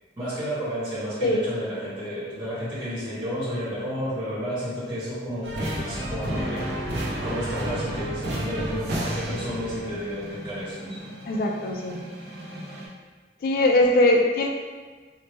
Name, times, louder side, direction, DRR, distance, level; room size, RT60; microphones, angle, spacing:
voice 1, 0.2-6.7 7.2-11.0, equal, 20° right, -11 dB, 1.0 m, -31 dB
sound 1, 5.4-12.9, right 1 dB, 70° right, 0.6 m, -32 dB
voice 2, 11.2-12.0 13.4-14.5, left 1 dB, 55° left, 2 dB, 0.3 m, -21 dB
3.2 x 2.1 x 3.0 m, 1.4 s
head